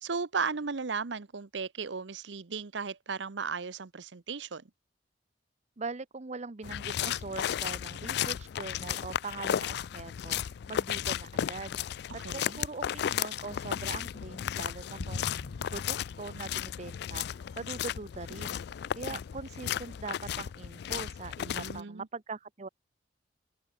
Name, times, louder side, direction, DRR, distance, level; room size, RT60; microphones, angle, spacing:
voice 1, 0.0-4.6 12.2-12.6 21.4-22.1, right 5 dB, 80° right, 0.9 m, -35 dB
voice 2, 5.8-10.4 10.7-11.8 12.1-15.3 15.7-18.6 18.9-22.7, right 4 dB, 40° right, 0.8 m, -42 dB
sound 1, 6.6-21.8, left 9 dB, 65° left, 0.3 m, -34 dB
sound 2, 14.2-14.3 15.0-16.8, left 2 dB, 85° left, 0.9 m, -43 dB
open air
head